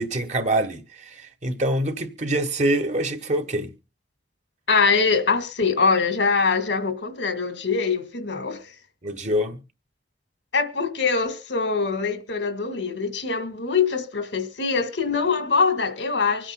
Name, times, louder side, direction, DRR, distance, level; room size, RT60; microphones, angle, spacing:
voice 1, 0.0-3.7 9.0-9.6, right 1 dB, 40° right, 1.2 m, -25 dB
voice 2, 4.7-8.7 10.5-16.5, left 4 dB, 90° left, 1.8 m, -23 dB
25.0 x 8.9 x 2.3 m
head